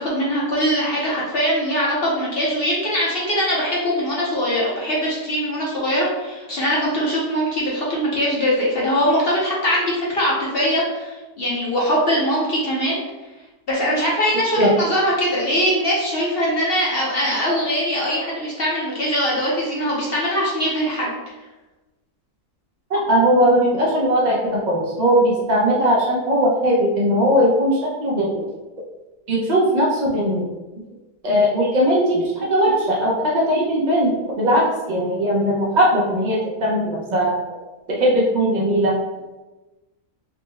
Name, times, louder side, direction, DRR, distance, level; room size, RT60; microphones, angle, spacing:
voice 1, 0.0-13.0 13.7-21.1, equal, 55° left, -5 dB, 0.7 m, -21 dB
voice 2, 22.9-28.5 29.3-30.5 31.2-34.1 34.4-37.3 37.9-38.9, equal, 75° right, -5 dB, 0.4 m, -19 dB
4.2 x 2.1 x 3.3 m, 1.1 s
omnidirectional pair, 1.6 m